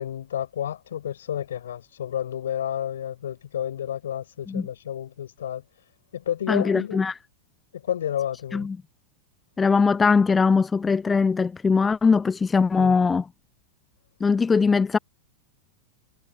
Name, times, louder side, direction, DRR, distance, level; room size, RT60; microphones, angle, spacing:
voice 1, 0.0-5.6 6.1-7.1 7.7-8.7 12.8-13.0, left 10 dB, 65° left, 5.2 m, -31 dB
voice 2, 6.5-7.1 8.5-8.8 9.6-13.2 14.2-15.0, left 5 dB, 15° left, 0.4 m, -21 dB
figure-of-eight pair, 90°, 0 cm